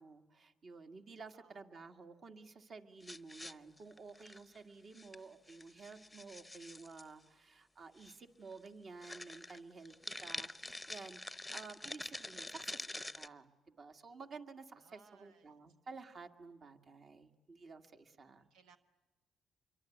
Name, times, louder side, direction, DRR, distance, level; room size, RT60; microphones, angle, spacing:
voice 1, 0.0-18.5, right 4 dB, 50° right, 6 dB, 1.9 m, -53 dB
voice 2, 1.3-1.6 14.7-15.6 18.1-18.8, right 6 dB, 85° right, 8 dB, 1.1 m, -66 dB
sound 1, 3.0-4.6 4.9-5.2 5.5-7.1 8.0-8.1 8.5-8.7 9.0-13.3, left 1 dB, 10° left, 0.8 m, -46 dB
26.5 x 23.5 x 9.3 m, 1.2 s
cardioid pair, 90°, 0 cm